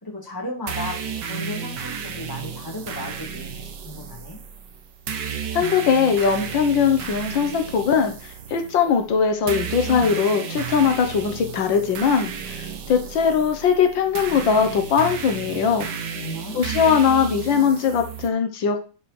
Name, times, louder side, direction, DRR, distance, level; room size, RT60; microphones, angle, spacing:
voice 1, 0.0-4.4 15.9-16.6, left 2 dB, 10° left, -2 dB, 2.7 m, -35 dB
sound 1, 0.7-18.3, right 7 dB, 70° right, 1.7 m, -33 dB
voice 2, 5.5-15.9 16.6-18.8, left 6 dB, 90° left, 5 dB, 1.9 m, -20 dB
11.5 x 4.9 x 4.4 m, 0.37 s
omnidirectional pair, 2.0 m